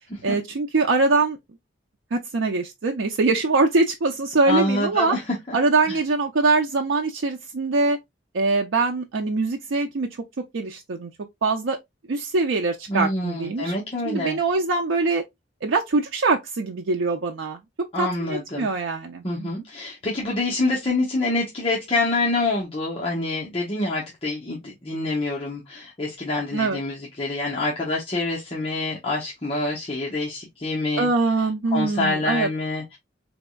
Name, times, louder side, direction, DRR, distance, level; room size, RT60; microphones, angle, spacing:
voice 1, 0.2-1.4 2.1-5.2 5.5-8.0 8.3-10.2 10.5-11.1 11.4-11.8 12.1-13.7 14.0-15.2 15.6-17.6 18.0-19.6 26.5-26.8 31.0-32.5, right 3 dB, 90° right, 0.5 m, -23 dB
voice 2, 4.5-5.2 5.5-5.6 5.9-6.0 12.9-14.4 17.9-18.7 19.2-31.1 31.7-33.0, left 2 dB, 30° left, 0.9 m, -26 dB
4.1 x 3.4 x 2.2 m
head